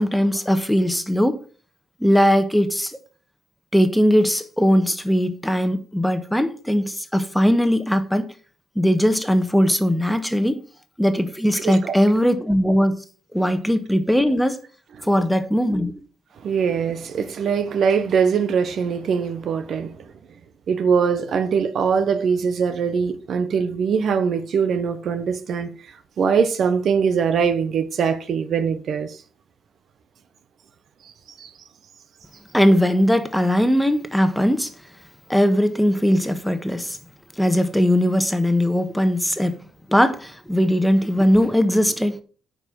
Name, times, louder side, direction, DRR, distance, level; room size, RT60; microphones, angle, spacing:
voice 1, 0.0-1.4 2.0-3.0 3.7-8.3 8.7-10.6 11.0-13.0 13.3-14.6 15.0-15.9 32.5-34.7 35.3-37.0 37.4-39.6 39.9-42.2, equal, 5° left, 1.3 m, -19 dB
voice 2, 11.6-11.9 15.0-15.1 16.4-20.0 20.7-25.7 26.2-29.2 31.4-31.5, right 6 dB, 60° right, 1.0 m, -22 dB
9.1 x 5.5 x 6.3 m
cardioid pair, 90°, 0 cm